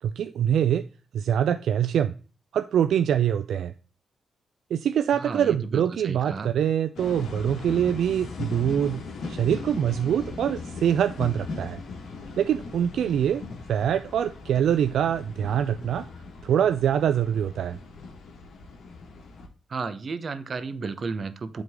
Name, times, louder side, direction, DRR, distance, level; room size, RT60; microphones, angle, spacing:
voice 1, 0.0-0.8 1.1-2.1 2.5-3.7 4.7-11.8 12.4-13.4 13.7-16.1 16.4-17.8, right 9 dB, 75° right, 0.3 m, -24 dB
voice 2, 5.1-6.5 19.7-21.6, right 4 dB, 55° right, 0.9 m, -33 dB
sound 1, 7.0-19.5, left 4 dB, 75° left, 1.4 m, -38 dB
8.0 x 3.8 x 3.5 m
supercardioid pair, 50°, 0 cm